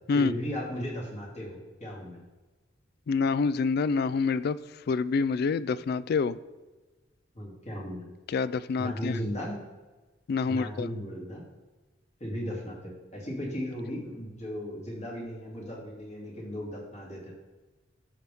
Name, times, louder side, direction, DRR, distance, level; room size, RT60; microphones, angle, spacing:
voice 1, 0.1-2.2 7.3-8.0 8.8-9.6 10.4-11.4 12.2-17.3, equal, 40° left, -4 dB, 2.6 m, -36 dB
voice 2, 3.1-4.6 4.9-6.4 8.3-9.1 10.3-10.9, left 4 dB, 55° left, 16 dB, 0.3 m, -27 dB
12.5 x 5.3 x 3.5 m, 1.2 s
head